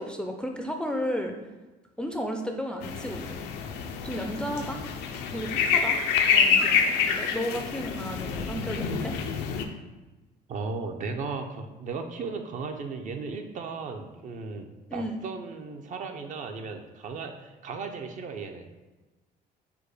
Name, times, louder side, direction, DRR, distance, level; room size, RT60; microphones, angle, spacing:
voice 1, 0.0-1.3 2.0-3.5 4.0-4.8 5.3-6.0 6.3-9.2 14.9-15.2, equal, 5° left, 3 dB, 0.3 m, -33 dB
sound 1, 2.8-9.6, left 6 dB, 90° left, 0.4 m, -27 dB
voice 2, 10.5-18.6, right 4 dB, 50° right, 5 dB, 0.5 m, -36 dB
4.6 x 2.1 x 4.7 m, 1.1 s
cardioid pair, 110°, 17 cm